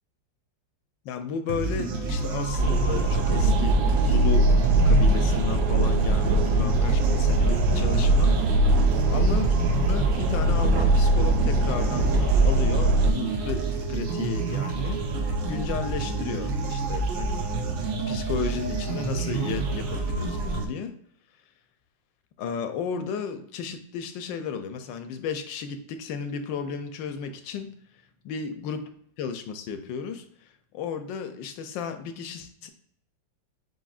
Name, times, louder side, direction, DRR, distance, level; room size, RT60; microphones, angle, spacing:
voice 1, 1.0-4.5 4.8-8.7 9.1-17.8 18.1-21.0 22.4-27.7 28.3-28.9 29.2-30.3 30.7-32.7, left 6 dB, 80° left, 8 dB, 1.3 m, -34 dB
sound 1, 1.5-20.6, right 3 dB, 85° right, 1.5 m, -29 dB
sound 2, 2.6-13.1, right 2 dB, 70° right, 1.1 m, -21 dB
7.9 x 2.7 x 2.4 m, 0.65 s
omnidirectional pair, 2.0 m